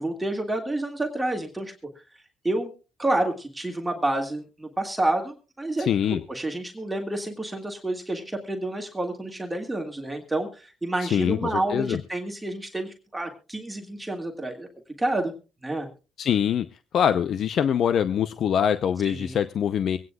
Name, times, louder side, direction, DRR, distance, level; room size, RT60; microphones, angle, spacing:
voice 1, 0.0-1.7 2.4-2.7 3.0-14.7 15.0-15.3 15.6-15.9 19.0-19.4, right 2 dB, 10° right, 3 dB, 1.8 m, -29 dB
voice 2, 5.8-6.2 11.0-12.0 16.2-16.7 16.9-20.0, left 8 dB, 65° left, 12 dB, 0.6 m, -24 dB
23.5 x 9.4 x 2.3 m, 0.32 s
cardioid pair, 90°, 0 cm